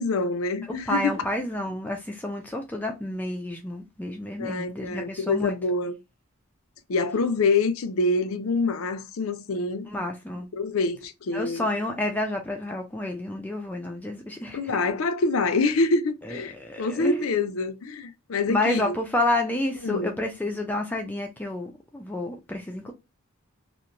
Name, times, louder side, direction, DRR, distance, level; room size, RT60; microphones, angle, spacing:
voice 1, 0.0-1.1 4.4-5.9 6.9-9.9 10.5-11.7 14.5-19.0 19.8-20.1, left 3 dB, 75° left, 0.5 m, -26 dB
voice 2, 0.9-5.5 9.8-10.5 11.3-14.6 16.3-17.3 18.5-22.9, left 1 dB, 10° left, 0.3 m, -29 dB
2.9 x 2.1 x 2.5 m
head